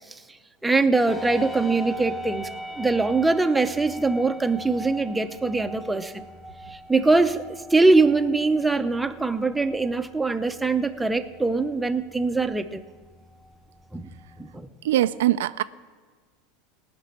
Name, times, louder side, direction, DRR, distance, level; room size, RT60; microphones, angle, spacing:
voice 1, 0.6-2.5 2.8-6.3 6.7-7.4 7.7-12.8 13.9-14.1 14.4-14.7, right 3 dB, 10° right, 7 dB, 0.7 m, -22 dB
sound 1, 1.1-14.7, equal, 20° left, 1.9 m, -40 dB
voice 2, 14.8-15.6, right 14 dB, 80° right, 13 dB, 0.3 m, -22 dB
17.5 x 6.1 x 8.7 m, 1.5 s
hypercardioid pair, 105°, 0 cm